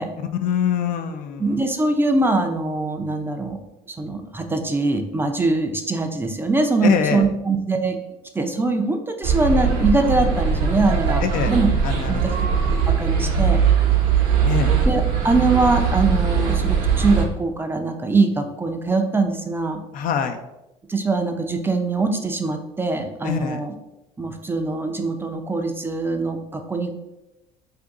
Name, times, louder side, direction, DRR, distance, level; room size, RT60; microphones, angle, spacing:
voice 1, 0.2-1.6 6.8-7.2 11.2-11.6 11.8-12.3 14.4-14.7 19.9-20.4 23.2-23.6, left 8 dB, 60° left, 7 dB, 0.4 m, -24 dB
voice 2, 1.4-3.6 4.0-8.0 8.4-11.7 12.1-12.2 12.7-13.6 14.9-19.8 20.9-23.7 24.2-26.9, right 3 dB, 15° right, 4 dB, 0.4 m, -22 dB
sound 1, 9.2-17.2, right 6 dB, 75° right, 0.8 m, -20 dB
2.6 x 2.5 x 3.6 m, 0.93 s
supercardioid pair, 80°, 16 cm